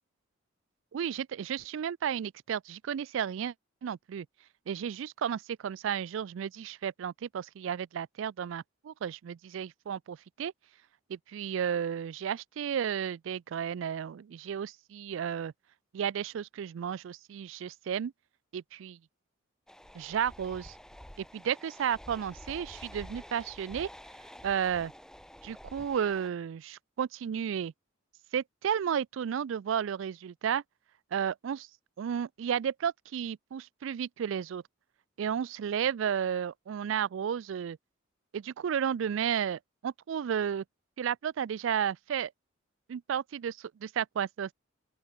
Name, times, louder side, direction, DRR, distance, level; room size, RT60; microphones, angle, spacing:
voice 1, 0.9-3.5 3.8-4.3 4.7-10.5 11.1-15.5 15.9-18.1 18.5-19.0 19.9-20.8 21.3-23.9 24.4-24.9 25.4-27.7 28.3-30.6 31.1-31.7 32.0-34.6 35.2-37.8 38.3-40.6 41.0-42.3 42.9-44.5, right 8 dB, 65° right, 0.3 m, -33 dB
sound 1, 19.7-26.3, equal, 5° left, 0.9 m, -49 dB
open air
head